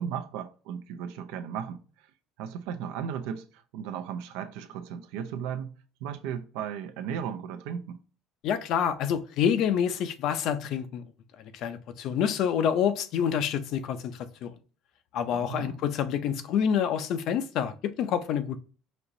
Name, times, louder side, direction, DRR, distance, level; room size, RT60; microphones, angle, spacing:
voice 1, 0.0-2.1 2.4-5.7 6.0-8.0 15.3-15.8, right 8 dB, 85° right, 0.5 m, -36 dB
voice 2, 8.4-11.0 11.5-14.1 14.4-14.5 15.1-18.6, left 8 dB, 55° left, 0.5 m, -27 dB
5.2 x 2.9 x 2.6 m
cardioid pair, 155°, 0 cm